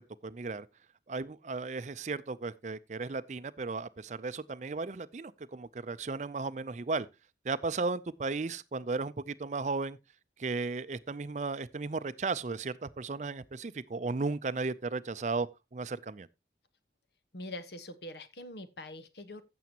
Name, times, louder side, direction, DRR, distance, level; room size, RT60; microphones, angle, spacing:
voice 1, 0.2-0.7 1.1-7.1 7.4-10.0 10.4-16.3, right 3 dB, 40° right, 0.5 m, -35 dB
voice 2, 17.3-19.4, left 1 dB, 70° left, 1.2 m, -43 dB
15.0 x 7.0 x 2.9 m
head